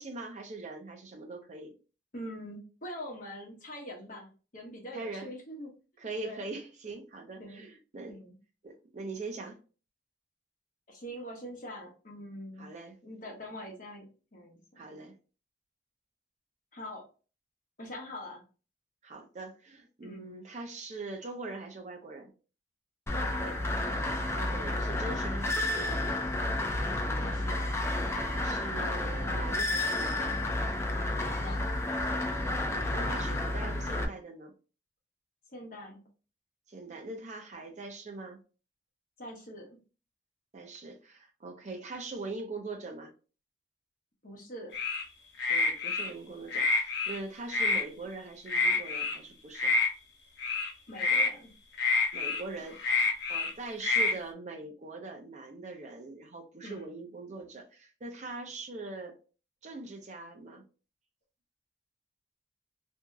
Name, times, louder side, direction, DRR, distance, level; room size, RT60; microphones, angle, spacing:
voice 1, 0.0-1.7 4.9-5.3 6.0-8.2 8.6-9.6 12.6-13.0 14.8-15.1 19.0-22.3 24.3-26.2 28.4-30.4 32.5-34.5 36.7-38.4 40.5-43.1 45.5-49.7 52.1-59.1 59.6-60.6, right 3 dB, 40° right, 0.5 m, -42 dB
voice 2, 2.1-4.3 4.5-5.7 6.0-6.5 7.4-7.6 8.1-8.3 10.9-12.7 13.0-14.6 14.9-15.0 16.7-17.0 17.8-18.4 20.0-20.3 23.1-23.7 27.2-27.7 31.1-31.7 35.5-36.0 39.2-39.7 44.2-44.7 50.9-51.5 56.6-56.9, equal, 50° left, 0.9 m, -43 dB
sound 1, 23.1-34.1, left 1 dB, 15° left, 0.3 m, -31 dB
sound 2, 44.7-45.0 45.4-46.1 46.5-47.2 47.5-47.8 48.5-49.2 49.5-49.9 50.4-50.7 51.0-51.3 51.8-52.4 52.8-53.5 53.8-54.1, left 3 dB, 90° left, 0.7 m, -27 dB
2.8 x 2.6 x 2.3 m
head